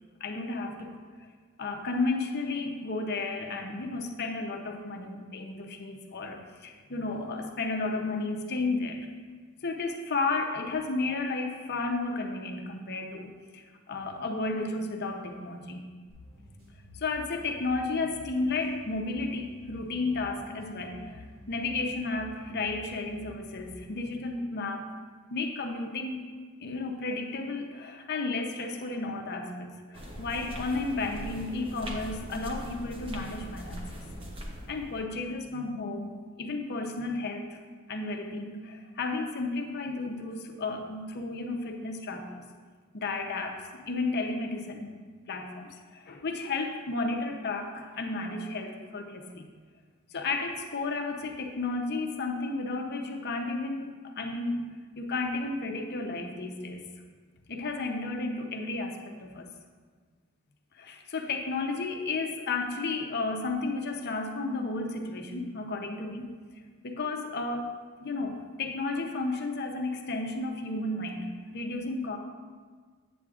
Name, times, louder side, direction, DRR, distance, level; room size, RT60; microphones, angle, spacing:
voice 1, 0.2-1.3 1.6-9.1 9.6-15.9 16.9-24.9 25.3-26.2 26.6-34.1 34.7-37.6 37.9-42.4 42.9-45.0 45.3-49.5 50.1-54.6 54.9-56.9 57.5-59.5 60.7-66.3 66.8-67.7 68.0-72.2, left 3 dB, 50° left, 3 dB, 0.7 m, -33 dB
sound 1, 16.1-24.1, left 1 dB, 65° right, 2.1 m, -50 dB
sound 2, 29.9-35.0, equal, 25° right, 0.7 m, -41 dB
8.4 x 8.2 x 2.4 m, 1.5 s
head